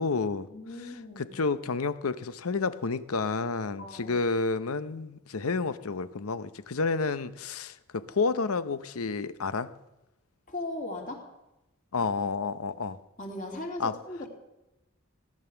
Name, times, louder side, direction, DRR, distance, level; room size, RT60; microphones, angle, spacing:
voice 1, 0.0-0.5 0.8-9.7 11.9-13.0 13.8-13.9, left 4 dB, 85° left, 14 dB, 0.8 m, -30 dB
voice 2, 0.5-1.3 3.8-4.2 10.5-11.2 13.2-14.3, left 2 dB, 40° left, 1 dB, 3.0 m, -38 dB
17.0 x 11.0 x 7.0 m, 0.94 s
head